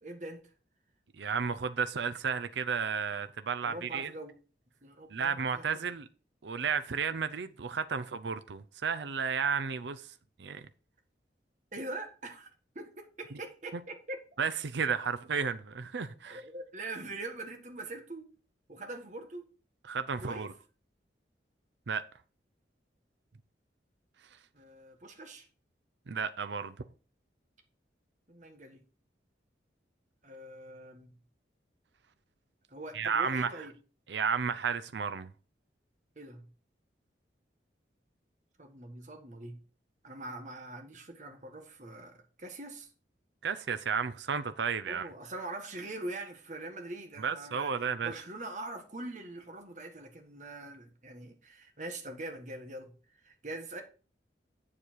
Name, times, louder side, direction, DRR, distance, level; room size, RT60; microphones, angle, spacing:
voice 1, 0.0-0.4 3.6-4.4 4.8-5.6 11.7-12.5 12.7-14.2 16.2-18.2 18.7-19.4 20.2-20.5 24.5-25.5 28.3-28.8 30.2-31.1 32.7-33.7 36.1-36.5 38.6-39.6 40.0-42.9 44.8-47.7 48.0-52.9 53.2-53.8, right 2 dB, 40° right, 1.6 m, -43 dB
voice 2, 1.2-4.1 5.1-6.1 6.4-10.1 10.4-10.6 13.7-13.8 14.4-16.4 19.9-20.5 21.9-22.0 26.1-26.7 32.9-33.5 34.1-35.3 43.4-45.1 47.2-48.1, right 6 dB, 80° right, 0.6 m, -32 dB
8.4 x 7.4 x 4.6 m
head